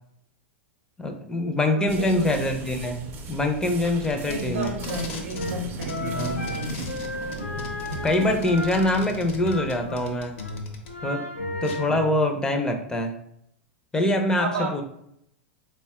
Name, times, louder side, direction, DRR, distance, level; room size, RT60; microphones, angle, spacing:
voice 1, 1.0-4.7 6.0-6.4 7.9-10.4 11.0-11.3 11.6-13.1 13.9-14.8, left 1 dB, 10° left, 4 dB, 0.5 m, -24 dB
voice 2, 1.8-2.5 4.3-6.7 14.4-14.8, right 1 dB, 75° right, 0 dB, 0.6 m, -32 dB
sound 1, 1.9-11.1, right 4 dB, 35° right, 0.6 m, -39 dB
Packing tape duct tape, 3.8-5.6 5.8-10.9 11.6-11.8, left 3 dB, 60° left, 0.8 m, -39 dB
sound 2, 4.8-10.0 10.3-12.1, left 1 dB, 85° left, 0.5 m, -34 dB
4.0 x 2.2 x 3.5 m, 0.75 s
hypercardioid pair, 100°, 7 cm